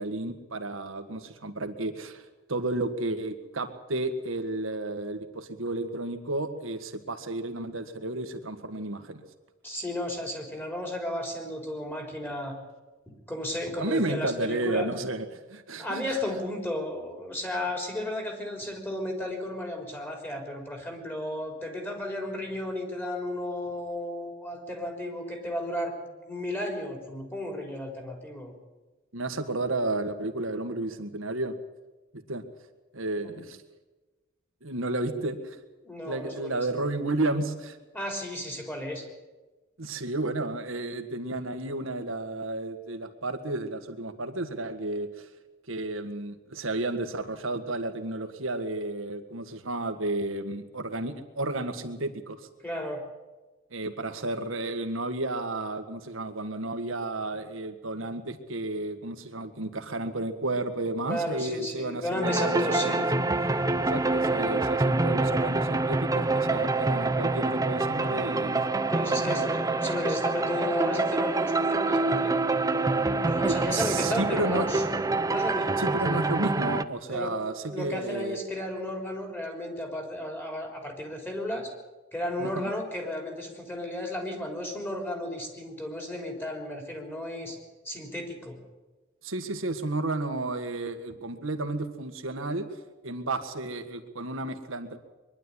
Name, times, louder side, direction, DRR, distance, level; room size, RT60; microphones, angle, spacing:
voice 1, 0.0-2.2 2.5-9.2 13.8-15.2 15.5-16.2 29.1-31.6 32.1-32.4 32.9-33.6 34.6-35.6 36.0-37.8 39.8-45.3 45.7-52.4 53.7-63.1 63.8-68.6 69.0-69.4 73.4-74.7 75.8-78.4 82.4-82.7 89.2-92.7 93.0-95.0, right 2 dB, 75° right, 7 dB, 1.8 m, -32 dB
voice 2, 9.6-12.6 13.3-14.9 15.8-25.9 26.3-28.5 33.2-33.5 35.8-36.6 37.9-39.1 52.6-53.0 61.1-63.1 68.9-72.3 73.2-74.8 75.2-76.4 77.1-77.3 77.7-81.7 82.1-87.6 87.8-88.6, left 1 dB, 10° left, 2 dB, 3.9 m, -33 dB
sound 1, 62.2-76.8, right 3 dB, 15° right, 0.7 m, -26 dB
22.5 x 11.5 x 9.9 m, 1.2 s
head